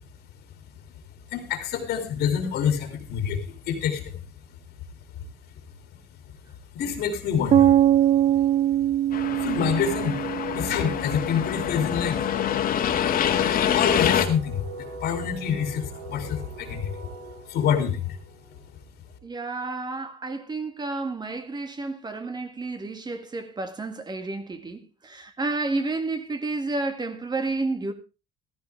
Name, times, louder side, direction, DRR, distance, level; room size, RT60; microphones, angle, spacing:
voice 1, 1.3-4.2 6.7-8.1 9.4-10.1 10.5-12.2 13.3-17.1 17.5-18.2, left 7 dB, 75° left, 2.8 m, -27 dB
sound 1, 7.5-11.4, right 11 dB, 40° right, 0.6 m, -22 dB
sound 2, 7.9-19.4, right 2 dB, 85° right, 4.8 m, -44 dB
sound 3, 9.1-14.3, left 9 dB, 60° left, 2.2 m, -25 dB
voice 2, 19.2-27.9, right 3 dB, 25° right, 2.0 m, -31 dB
14.5 x 13.5 x 3.4 m
cardioid pair, 110°, 17 cm